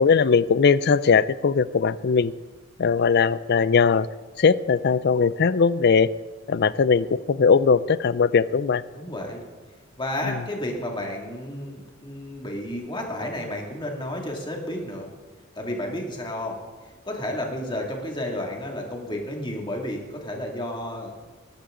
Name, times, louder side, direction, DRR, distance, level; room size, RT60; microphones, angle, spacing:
voice 1, 0.0-2.3 2.8-4.1 4.4-6.1 6.5-8.8 10.2-10.4, left 5 dB, 50° left, 17 dB, 0.4 m, -20 dB
voice 2, 8.9-9.4 10.0-15.1 15.5-16.6 17.1-21.1, left 1 dB, 20° left, 0 dB, 2.4 m, -31 dB
21.0 x 11.5 x 3.9 m, 1.4 s
head